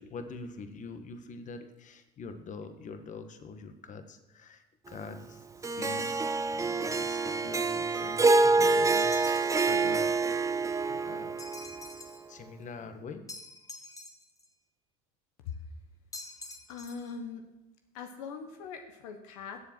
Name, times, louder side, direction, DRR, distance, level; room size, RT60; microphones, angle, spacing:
voice 1, 0.0-6.1 6.5-9.2 9.6-10.4 10.9-11.4 12.3-13.2, left 4 dB, 40° left, 8 dB, 1.4 m, -45 dB
Harp, 5.6-12.0, right 3 dB, 15° right, 0.7 m, -27 dB
sound 1, 9.0-9.9 11.4-12.3 13.3-14.5 16.1-17.1, left 2 dB, 15° left, 1.3 m, -46 dB
voice 2, 16.7-17.5 17.9-19.6, left 6 dB, 75° left, 6 dB, 1.2 m, -41 dB
15.5 x 7.2 x 4.5 m, 1.0 s
hypercardioid pair, 80°, 19 cm